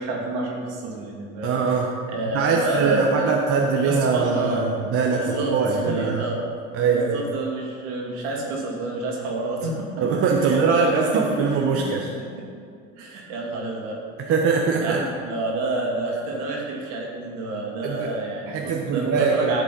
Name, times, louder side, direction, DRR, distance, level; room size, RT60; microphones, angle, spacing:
voice 1, 0.0-1.8 2.1-4.6 5.1-6.4 6.8-10.1 10.4-11.4 11.7-11.9 12.2-12.5 13.0-14.0 14.8-19.6, right 2 dB, 60° right, -2 dB, 2.6 m, -29 dB
voice 2, 1.4-1.9 2.3-6.3 6.7-7.2 10.0-12.1 14.2-15.0 17.8-18.1 18.5-19.5, right 5 dB, 35° right, 0 dB, 1.0 m, -22 dB
13.0 x 7.3 x 4.2 m, 2.3 s
figure-of-eight pair, 75°, 40 cm